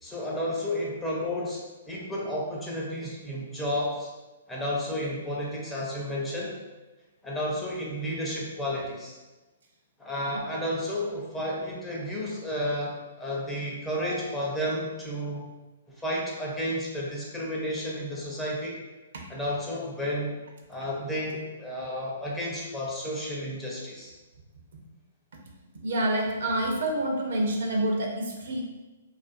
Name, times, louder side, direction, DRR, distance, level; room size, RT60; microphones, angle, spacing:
voice 1, 0.0-4.1 4.5-6.5 7.2-9.2 10.0-15.5 16.0-18.8 19.3-20.4 20.7-24.1, equal, 10° left, -5 dB, 0.6 m, -32 dB
voice 2, 14.0-14.3 19.1-19.2 25.8-28.6, right 1 dB, 65° right, 1 dB, 0.5 m, -28 dB
2.4 x 2.3 x 2.5 m, 1.2 s
hypercardioid pair, 135°, 0 cm